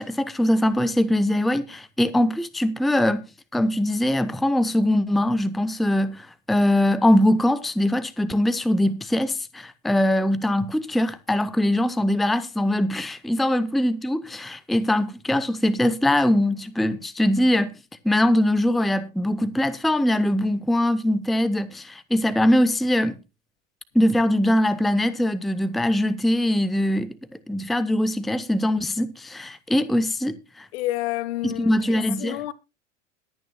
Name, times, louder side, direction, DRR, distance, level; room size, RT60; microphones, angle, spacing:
voice 1, 0.0-3.2 3.5-17.8 18.0-23.2 23.9-27.1 27.5-30.7 31.4-32.4, left 1 dB, ahead, 0.7 m, -22 dB
voice 2, 30.7-32.5, left 16 dB, 60° left, 1.4 m, -29 dB
21.5 x 9.2 x 2.2 m
hypercardioid pair, 110°, 37 cm